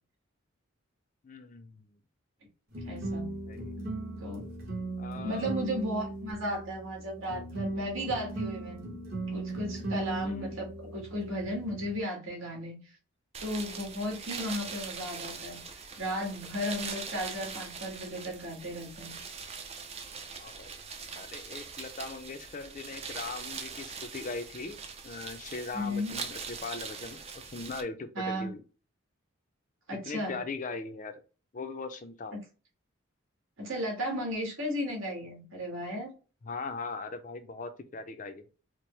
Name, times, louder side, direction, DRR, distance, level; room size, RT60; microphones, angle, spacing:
voice 1, 1.2-1.9 3.5-3.7 5.0-5.5 10.2-10.6 20.4-20.7 21.1-24.8 25.0-28.6 30.1-31.1 31.5-32.4 36.4-38.4, left 3 dB, 35° left, 0.4 m, -40 dB
sound 1, 2.7-12.0, right 2 dB, 45° right, 1.1 m, -37 dB
voice 2, 2.8-3.3 4.2-4.4 5.2-8.9 9.3-12.8 13.4-19.2 25.7-26.1 28.1-28.5 29.9-30.4 33.6-36.1, equal, 70° right, 1.6 m, -35 dB
sound 2, 13.3-27.8, right 5 dB, 30° right, 0.4 m, -42 dB
4.4 x 2.0 x 3.2 m
head